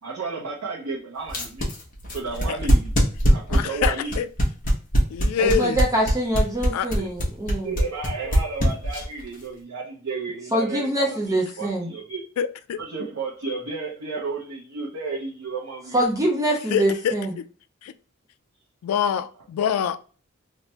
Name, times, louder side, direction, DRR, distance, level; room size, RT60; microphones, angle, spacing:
voice 1, 0.0-1.7 2.1-2.9 3.3-4.1 6.9-7.2 7.6-12.2 12.8-16.0, right 4 dB, 85° right, 0.7 m, -32 dB
sound 1, 1.3-9.2, equal, 40° left, 1.0 m, -20 dB
voice 2, 3.5-4.3 5.1-5.8 6.7-6.9 12.4-12.8 16.7-17.4 17.8-17.9 18.8-20.0, left 7 dB, 80° left, 0.3 m, -25 dB
voice 3, 5.4-7.8 10.5-11.9 15.9-17.3, right 1 dB, 15° right, 0.6 m, -24 dB
3.2 x 2.1 x 2.9 m
head